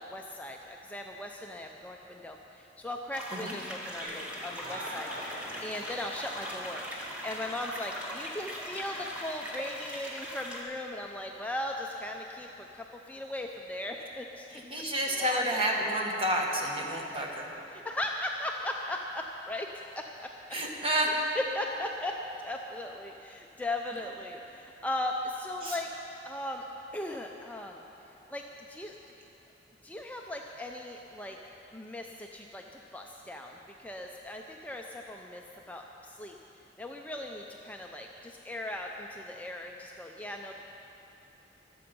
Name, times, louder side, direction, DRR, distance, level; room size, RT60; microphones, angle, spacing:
voice 1, 0.0-5.1 5.6-6.8 7.2-12.5 12.7-14.5 15.1-15.6 17.7-19.7 20.0-20.5 21.4-22.2 22.4-25.9 26.2-26.6 26.9-27.8 28.3-29.0 29.8-31.4 31.7-36.3 36.8-40.5, left 1 dB, 10° left, 1 dB, 0.5 m, -38 dB
sound 1, 3.1-10.6, equal, 5° right, 1.7 m, -40 dB
sound 2, 4.0-9.2, equal, 50° right, 3.2 m, -45 dB
voice 2, 14.5-17.4 20.5-21.1 25.6-25.8, right 1 dB, 30° right, -1 dB, 1.7 m, -30 dB
23.5 x 7.8 x 5.4 m, 3.0 s
head